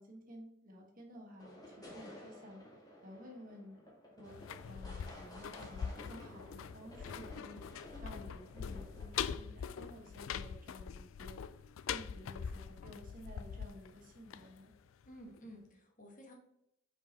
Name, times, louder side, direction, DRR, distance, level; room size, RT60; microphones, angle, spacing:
voice 1, 0.0-2.6 3.0-4.4 4.6-11.4 11.9-14.7, equal, 40° right, 0 dB, 1.5 m, -53 dB
sound 1, 1.4-9.5, left 1 dB, 20° left, 1.7 m, -54 dB
sound 2, 4.3-15.1 15.4-15.5, left 7 dB, 75° left, 0.4 m, -43 dB
voice 2, 15.0-16.3, equal, 40° left, 1 dB, 1.6 m, -53 dB
5.5 x 4.8 x 4.2 m, 0.78 s
head